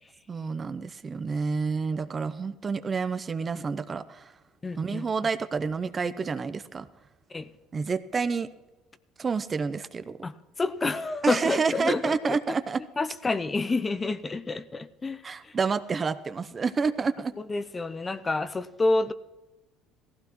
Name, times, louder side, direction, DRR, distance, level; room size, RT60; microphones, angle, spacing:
voice 1, 0.3-4.3 4.8-6.9 7.7-8.5 9.2-10.2 11.2-12.8 15.2-17.3, right 5 dB, 30° right, 12 dB, 0.6 m, -29 dB
voice 2, 4.6-5.0 7.3-7.5 10.2-10.3 10.6-12.4 13.0-15.5 17.5-19.1, left 3 dB, 20° left, 14 dB, 0.6 m, -28 dB
17.0 x 15.5 x 3.1 m, 1.1 s
supercardioid pair, 100°, 0 cm